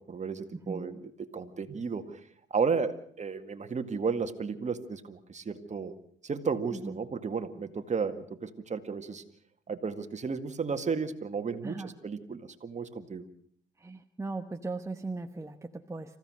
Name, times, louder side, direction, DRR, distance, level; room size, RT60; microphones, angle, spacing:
voice 1, 0.0-2.2 2.5-5.9 6.2-9.2 9.7-13.3, right 5 dB, 35° right, 8 dB, 2.0 m, -33 dB
voice 2, 0.5-0.9 6.7-7.0 11.6-11.9 13.8-16.2, right 3 dB, 15° right, 6 dB, 1.1 m, -38 dB
26.5 x 15.5 x 6.4 m, 0.62 s
cardioid pair, 90°, 20 cm